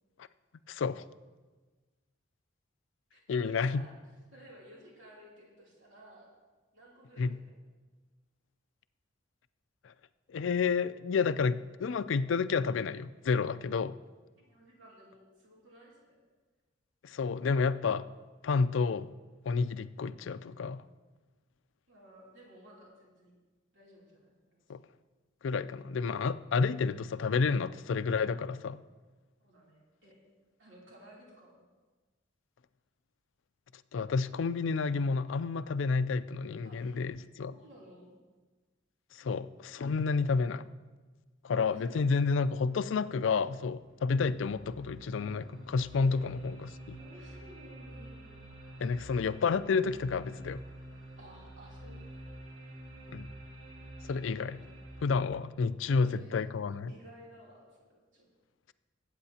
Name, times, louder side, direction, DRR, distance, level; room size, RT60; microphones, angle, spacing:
voice 1, 0.7-1.0 3.3-3.9 7.2-7.4 10.3-14.0 17.0-18.1 18.4-19.1 19.5-20.8 24.7-24.8 25.4-28.8 33.9-37.6 39.2-40.6 41.4-47.0 48.8-50.6 53.1-53.3 54.1-54.6 55.0-56.9, left 5 dB, 75° left, 14 dB, 0.4 m, -30 dB
voice 2, 3.1-3.9 4.3-6.3 6.7-7.6 14.4-16.2 21.9-23.3 23.7-24.6 29.4-30.2 30.6-31.6 36.6-37.0 37.5-38.1 41.7-42.1 42.4-42.5 46.0-46.3 47.0-48.4 51.2-52.3 54.3-54.9 55.8-56.5 56.9-58.3, right 1 dB, 75° right, -4 dB, 3.1 m, -55 dB
sound 1, 43.7-55.0, right 1 dB, 50° right, 2.0 m, -48 dB
21.0 x 8.7 x 2.9 m, 1.3 s
head